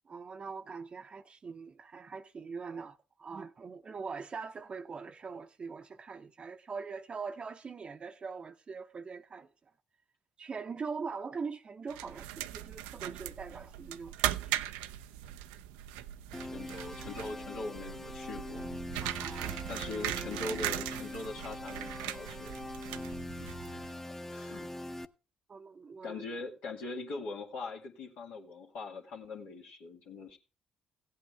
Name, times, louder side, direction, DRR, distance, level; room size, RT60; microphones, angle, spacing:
voice 1, 0.1-9.5 10.4-14.1 14.4-14.5 19.0-19.6 23.6-23.7 25.5-26.2, right 5 dB, 40° right, 0.7 m, -42 dB
sound 1, 11.9-24.0, right 13 dB, 80° right, 0.5 m, -39 dB
sound 2, 16.3-25.0, left 1 dB, 15° left, 0.9 m, -42 dB
voice 2, 16.4-18.7 19.7-22.7 23.7-23.8 24.3-24.7 26.0-30.4, left 3 dB, 75° left, 2.2 m, -42 dB
16.0 x 8.5 x 3.4 m
hypercardioid pair, 50°, 3 cm